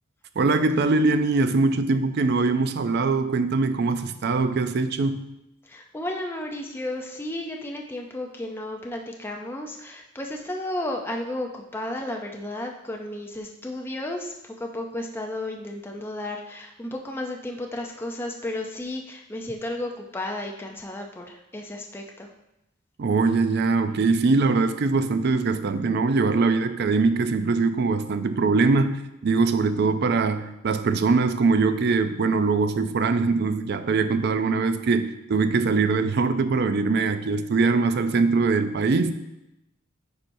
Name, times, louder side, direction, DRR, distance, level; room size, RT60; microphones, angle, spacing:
voice 1, 0.4-5.3 23.0-39.1, right 4 dB, 55° right, 10 dB, 0.4 m, -22 dB
voice 2, 5.6-22.3, left 1 dB, 10° left, 1 dB, 0.4 m, -33 dB
9.6 x 4.5 x 2.6 m, 0.90 s
head